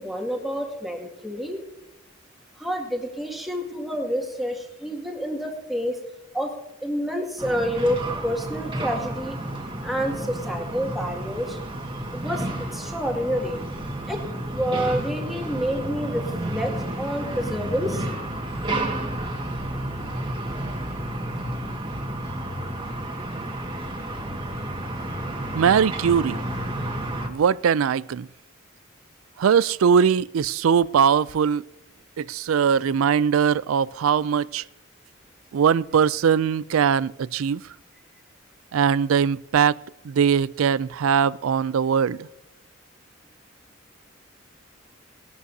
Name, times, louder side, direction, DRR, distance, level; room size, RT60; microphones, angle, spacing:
voice 1, 0.0-1.6 2.6-6.0 6.3-6.6 6.8-9.4 9.8-11.6 12.1-12.4 12.7-13.6 14.1-16.7 17.0-18.1, equal, ahead, 2.2 m, -28 dB
sound 1, 7.4-27.3, right 1 dB, 25° right, 1.8 m, -31 dB
voice 2, 25.5-26.4 27.3-28.3 29.4-31.7 32.2-34.6 35.5-37.6 38.7-39.8 40.0-42.3, right 7 dB, 85° right, 0.4 m, -21 dB
19.5 x 12.5 x 2.8 m
head